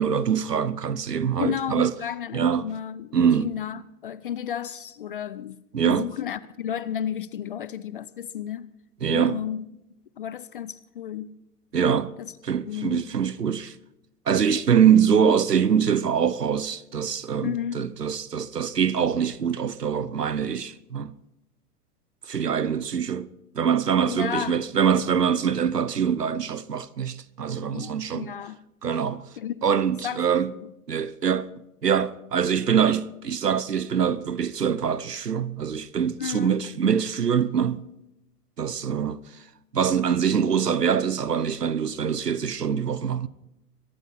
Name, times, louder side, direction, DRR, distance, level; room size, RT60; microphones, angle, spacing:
voice 1, 0.0-1.9 2.3-2.7 3.1-3.5 5.7-6.1 9.0-9.4 11.7-12.1 12.4-13.7 14.3-21.1 22.3-23.3 23.5-28.3 28.8-29.3 29.6-30.5 30.9-31.5 31.8-37.9 38.6-39.2 39.7-43.3, right 7 dB, 80° right, 0.9 m, -24 dB
voice 2, 1.4-8.7 9.1-9.6 10.2-11.4 12.2-12.3 12.7-13.1 17.4-17.9 24.1-24.6 27.7-28.6 29.4-29.7 30.0-30.2 30.5-30.7 36.2-36.6, left 9 dB, 35° left, 0.4 m, -32 dB
22.5 x 12.0 x 4.3 m
figure-of-eight pair, 105°, 47 cm